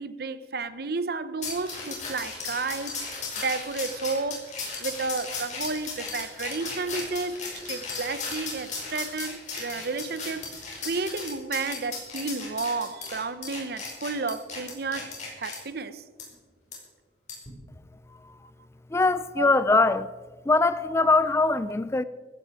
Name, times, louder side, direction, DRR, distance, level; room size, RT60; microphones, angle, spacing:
voice 1, 0.0-3.0 3.4-4.5 4.8-10.5 10.8-16.0 19.4-19.5, right 4 dB, 55° right, 0.8 m, -32 dB
sound 1, 1.4-15.6 16.2-16.3 16.7-16.8 17.3-17.5, left 4 dB, 40° left, 5.2 m, -36 dB
voice 2, 18.9-20.1 20.5-22.0, left 3 dB, 15° left, 0.3 m, -22 dB
15.5 x 15.5 x 4.8 m
head